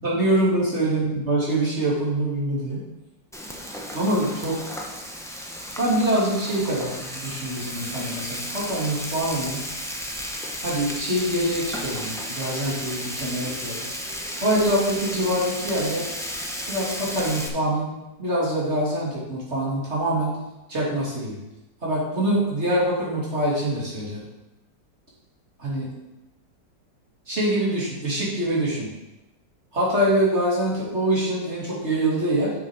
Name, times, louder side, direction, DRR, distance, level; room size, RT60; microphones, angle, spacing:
voice 1, 0.0-2.8 3.9-4.6 5.8-9.6 10.6-13.8 14.4-16.0 16.7-17.9 18.2-20.4 20.7-21.4 21.8-24.2 25.6-25.9 27.3-28.9 29.7-32.5, right 1 dB, 35° right, -7 dB, 3.1 m, -24 dB
Frying (food), 3.3-17.5, equal, 5° left, 0.5 m, -33 dB
8.3 x 6.4 x 5.0 m, 0.98 s
omnidirectional pair, 2.0 m